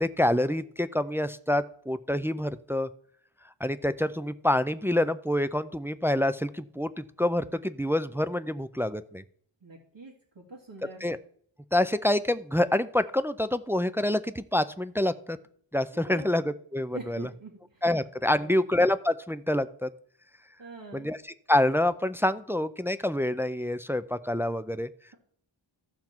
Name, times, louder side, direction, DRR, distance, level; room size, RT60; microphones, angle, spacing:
voice 1, 0.0-2.9 3.6-9.2 11.0-11.2 11.7-15.4 15.7-17.3 17.8-19.9 20.9-21.2 21.5-24.9, left 1 dB, 5° right, 12 dB, 0.3 m, -27 dB
voice 2, 9.6-11.0 15.9-16.3 16.9-17.9 18.2-18.6 20.6-21.1, right 3 dB, 60° right, -4 dB, 2.1 m, -45 dB
14.0 x 5.9 x 4.4 m, 0.62 s
wide cardioid pair, 50°, 49 cm